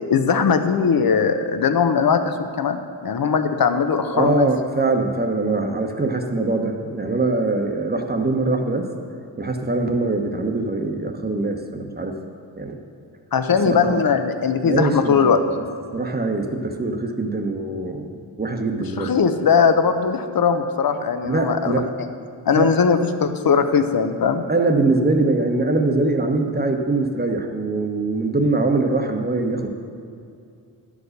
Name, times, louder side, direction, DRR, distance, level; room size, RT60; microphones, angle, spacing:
voice 1, 0.1-4.5 13.3-15.4 19.0-22.1 22.5-24.4, left 6 dB, 50° left, 8 dB, 0.8 m, -19 dB
voice 2, 4.1-8.9 9.4-12.1 12.6-12.8 13.6-14.0 14.6-15.5 15.9-19.1 21.2-21.9 22.5-22.8 24.5-29.7, right 2 dB, 20° right, 4 dB, 1.1 m, -22 dB
11.0 x 5.0 x 6.5 m, 2.5 s
cardioid pair, 65°, 44 cm